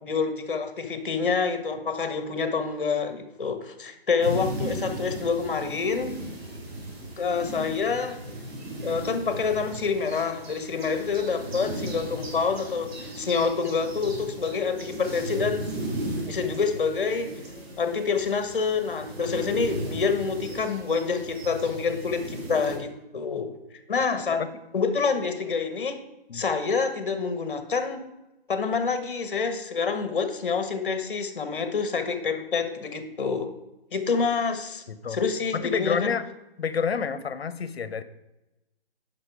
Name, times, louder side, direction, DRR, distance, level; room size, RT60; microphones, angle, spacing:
voice 1, 0.0-6.2 7.2-8.2 8.8-15.7 16.2-17.3 17.8-23.6 23.9-24.4 24.7-26.0 26.3-28.0 28.5-33.5 33.9-34.8 35.1-36.2, left 5 dB, 60° left, 8 dB, 1.3 m, -27 dB
sound 1, 4.2-22.8, right 1 dB, 90° right, 3.6 m, -36 dB
voice 2, 34.9-35.2 35.5-36.2 36.6-38.0, left 6 dB, 80° left, 13 dB, 0.9 m, -28 dB
10.5 x 5.6 x 4.7 m, 0.96 s
hypercardioid pair, 170°, 30 cm